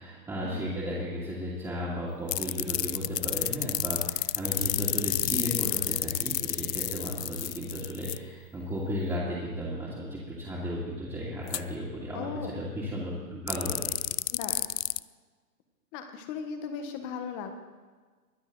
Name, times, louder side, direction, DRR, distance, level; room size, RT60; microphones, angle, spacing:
voice 1, 0.0-13.9, equal, 5° right, -8 dB, 2.5 m, -34 dB
sound 1, 2.3-8.2 11.5-11.6 13.5-15.0, left 11 dB, 80° left, 0.6 m, -30 dB
voice 2, 12.1-12.7 14.3-14.7 15.9-17.5, left 6 dB, 25° left, 7 dB, 1.5 m, -37 dB
22.5 x 8.7 x 4.1 m, 1.4 s
hypercardioid pair, 135°, 49 cm